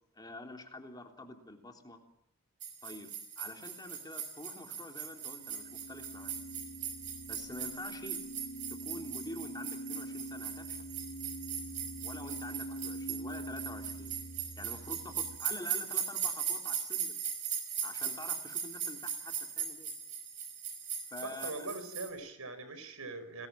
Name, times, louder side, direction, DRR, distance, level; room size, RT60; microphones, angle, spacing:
voice 1, 0.1-2.0 2.8-6.3 7.3-8.2 8.8-10.8 12.0-14.1 14.6-17.2 17.8-19.9 21.1-21.7, left 2 dB, 20° left, 3 dB, 3.5 m, -46 dB
sound 1, 2.6-22.1, right 8 dB, 35° right, 5.4 m, -39 dB
sound 2, 5.2-15.4, right 1 dB, 65° left, 3.7 m, -45 dB
voice 2, 21.2-23.5, right 3 dB, 80° right, 11 dB, 5.1 m, -42 dB
29.5 x 21.0 x 7.5 m, 0.75 s
head